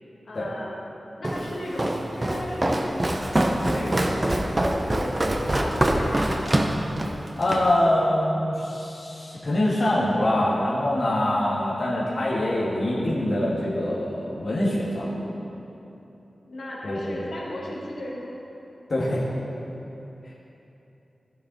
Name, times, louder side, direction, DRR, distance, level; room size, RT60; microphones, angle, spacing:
voice 1, 0.2-0.7 1.2-2.9 3.6-6.5 16.4-18.3, left 1 dB, 70° left, -4 dB, 1.7 m, -36 dB
Walk footsteps, 1.2-7.7, right 1 dB, 25° right, 0.7 m, -24 dB
voice 2, 7.4-15.2 16.8-17.3 18.9-19.2, left 1 dB, 50° left, -7 dB, 1.4 m, -24 dB
14.5 x 6.6 x 4.0 m, 3.0 s
wide cardioid pair, 110°, 0 cm